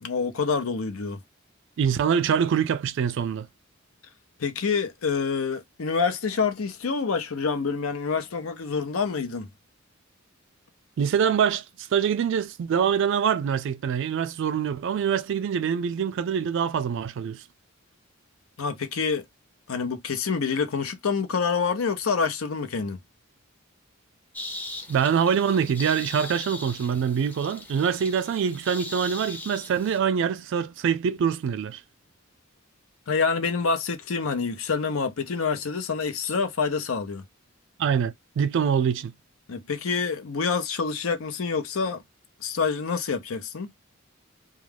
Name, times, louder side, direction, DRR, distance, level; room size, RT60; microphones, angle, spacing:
voice 1, 0.0-1.2 4.4-9.5 18.6-19.2 19.7-23.0 33.1-37.2 39.5-42.0 42.4-43.7, left 5 dB, 80° left, 0.6 m, -27 dB
voice 2, 1.8-3.5 11.0-17.4 24.9-31.8 37.8-39.1, right 7 dB, 60° right, 0.3 m, -24 dB
sound 1, 24.3-30.0, left 2 dB, 10° left, 0.5 m, -39 dB
2.3 x 2.2 x 3.2 m
head